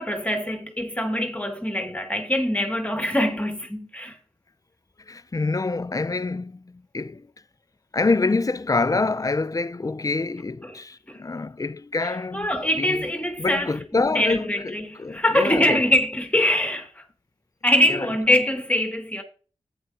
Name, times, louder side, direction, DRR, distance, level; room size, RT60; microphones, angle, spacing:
voice 1, 0.0-4.2 10.6-10.8 11.1-11.2 12.0-13.8 14.1-17.0 17.6-19.2, left 1 dB, 10° left, 1.8 m, -23 dB
voice 2, 5.1-7.3 7.9-12.5 12.8-13.0 13.4-15.8 17.9-18.1, left 3 dB, 35° left, 0.5 m, -26 dB
11.0 x 8.9 x 2.6 m
cardioid pair, 45°, 10 cm